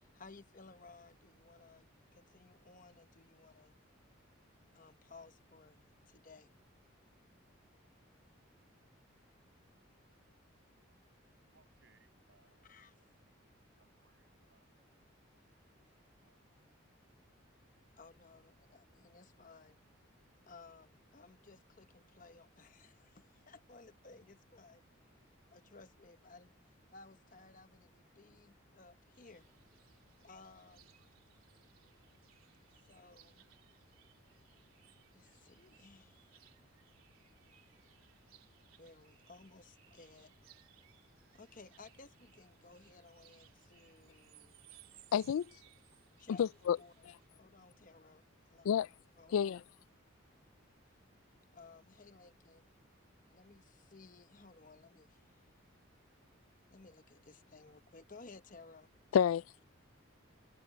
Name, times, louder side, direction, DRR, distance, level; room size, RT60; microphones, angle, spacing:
voice 1, 0.1-1.9 2.1-3.7 4.7-6.5 12.7-12.9 18.0-19.8 20.5-24.8 25.5-26.5 26.9-29.5 30.2-30.9 32.9-33.5 35.1-36.2 38.8-40.3 41.3-44.5 46.2-46.4 46.8-46.9 47.4-48.2 48.5-48.7 49.2-49.6 51.5-52.6 53.3-55.2 56.7-58.9, left 3 dB, 40° left, 0.9 m, -58 dB
voice 2, 11.5-13.1 13.5-16.8, right 4 dB, 60° right, 7.6 m, -74 dB
sound 1, 29.1-47.3, right 9 dB, 85° right, 3.7 m, -65 dB
voice 3, 45.1-45.5 46.3-46.8 47.0-47.2 48.6-48.9 49.3-49.6 59.1-59.4, left 8 dB, 85° left, 0.3 m, -30 dB
head